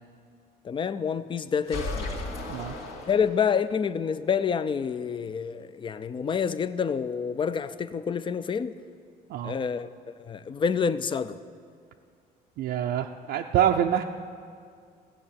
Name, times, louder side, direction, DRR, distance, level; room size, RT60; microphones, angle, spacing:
voice 1, 0.6-2.1 3.1-8.7 9.4-9.9 10.2-11.4, left 6 dB, 30° left, 0.5 m, -28 dB
sound 1, 1.6-3.7, left 2 dB, 75° left, 2.3 m, -35 dB
voice 2, 12.6-14.0, right 10 dB, 75° right, 0.5 m, -25 dB
15.5 x 6.4 x 8.7 m
cardioid pair, 110°, 17 cm